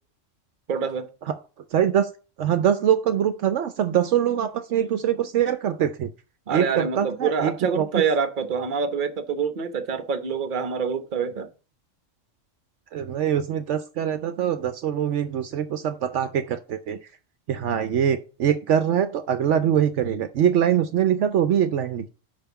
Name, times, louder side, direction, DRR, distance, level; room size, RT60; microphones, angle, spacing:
voice 1, 0.7-1.1 6.5-11.5, right 6 dB, 45° right, 1.0 m, -26 dB
voice 2, 1.7-2.1 2.4-6.1 6.5-7.9 12.9-17.0 17.5-22.1, right 9 dB, 70° right, 0.9 m, -23 dB
5.7 x 5.4 x 6.8 m
omnidirectional pair, 1.3 m